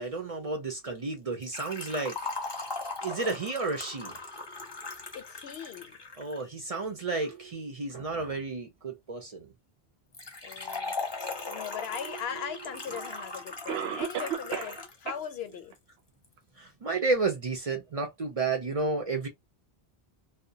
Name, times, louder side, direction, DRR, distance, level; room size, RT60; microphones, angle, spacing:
voice 1, 0.0-2.7 3.0-4.2 6.2-9.5 11.2-11.6 12.0-13.0 16.6-19.3, right 3 dB, 45° right, 0.6 m, -32 dB
Liquid, 1.4-6.4 10.1-15.0 15.2-15.3 16.2-16.3, left 3 dB, 30° left, 0.6 m, -39 dB
voice 2, 5.1-5.9 10.4-10.9 11.5-15.7, left 8 dB, 80° left, 0.9 m, -39 dB
Cough, 12.5-12.6 13.7-14.8 15.1-15.2 15.7-15.8 16.4-16.5, right 9 dB, 80° right, 0.8 m, -33 dB
2.3 x 2.1 x 2.7 m
omnidirectional pair, 1.0 m